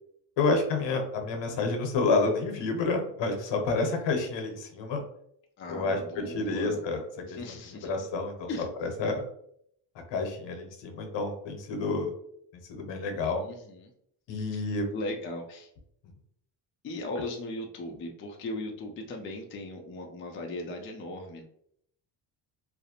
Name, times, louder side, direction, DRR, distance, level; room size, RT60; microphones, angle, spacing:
voice 1, 0.4-5.0 5.7-7.0 7.3-7.4 7.8-9.2 10.1-12.1 12.7-13.4 14.3-14.9, left 3 dB, 65° left, 4 dB, 0.8 m, -29 dB
voice 2, 5.6-6.8 7.3-7.9 8.5-8.7 13.4-13.9 14.5-14.6 14.9-15.7 16.8-21.4, left 2 dB, 30° left, 2 dB, 0.4 m, -37 dB
2.4 x 2.0 x 2.8 m, 0.70 s
cardioid pair, 95°, 47 cm